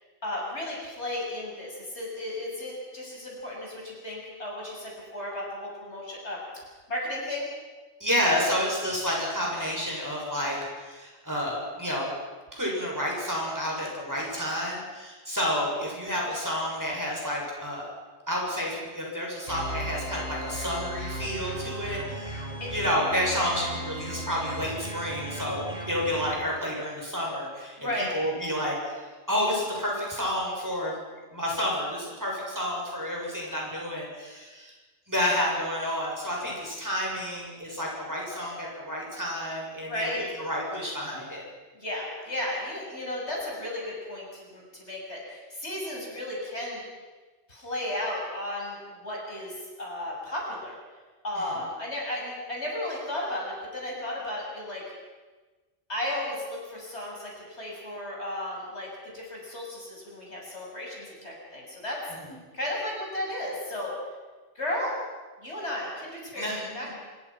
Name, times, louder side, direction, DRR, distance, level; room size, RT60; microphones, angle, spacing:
voice 1, 0.2-6.4 6.9-7.5 22.6-22.7 27.8-28.1 39.9-40.2 41.7-46.8 47.5-50.8 51.2-54.8 55.9-58.9 59.1-62.0 62.5-63.9 64.6-64.9 65.4-66.9, left 1 dB, 75° left, -3 dB, 7.6 m, -34 dB
voice 2, 8.0-12.1 12.5-17.9 18.3-27.8 28.1-30.9 31.3-34.7 35.1-40.1 40.4-41.5 51.4-51.6 62.1-62.3 66.3-66.9, equal, 15° right, -3 dB, 7.0 m, -30 dB
sound 1, 19.5-26.3, right 1 dB, 40° right, 7.4 m, -36 dB
26.0 x 22.5 x 6.1 m, 1.3 s
omnidirectional pair, 1.2 m